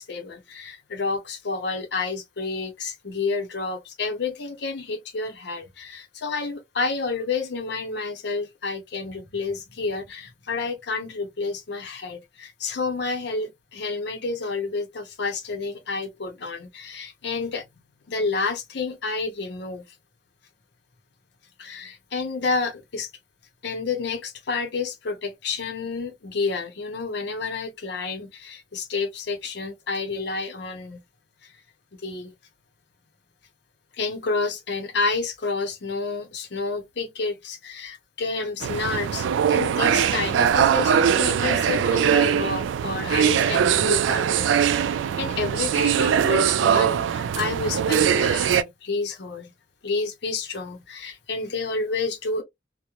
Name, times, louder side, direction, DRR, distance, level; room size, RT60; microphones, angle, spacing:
voice 1, 0.0-17.6 18.1-19.8 21.6-23.1 23.6-31.0 31.4-31.5 32.0-32.3 33.9-49.5 49.8-52.4, left 4 dB, 65° left, 0.7 m, -30 dB
sound 1, 38.6-48.6, right 8 dB, 90° right, 0.3 m, -21 dB
2.9 x 2.1 x 2.3 m
head